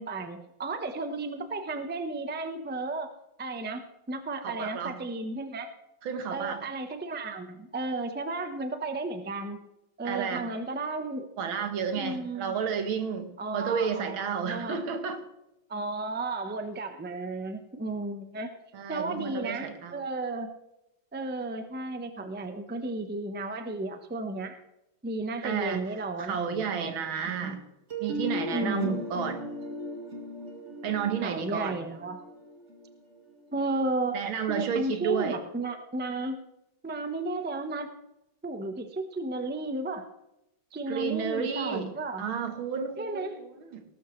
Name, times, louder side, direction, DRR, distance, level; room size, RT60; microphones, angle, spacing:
voice 1, 0.0-3.1 3.4-5.7 6.3-9.6 10.0-11.3 11.9-12.6 13.4-14.8 15.7-18.6 18.9-20.5 21.1-24.6 25.0-26.9 27.4-27.6 28.5-29.0 31.2-32.2 33.5-34.2 34.5-36.4 36.8-37.9 38.4-40.1 40.7-42.2 43.0-43.4, right 2 dB, 10° right, 7 dB, 0.4 m, -33 dB
voice 2, 4.4-5.0 6.0-6.6 10.1-10.5 11.4-15.2 18.7-20.0 25.4-25.9 26.2-27.6 28.0-29.4 30.8-31.8 34.1-35.4 40.9-41.9 42.2-43.8, right 7 dB, 90° right, 7 dB, 2.2 m, -31 dB
sound 1, 27.9-33.7, left 1 dB, 35° right, 2.2 m, -37 dB
19.0 x 12.5 x 3.2 m, 0.88 s
omnidirectional pair, 2.1 m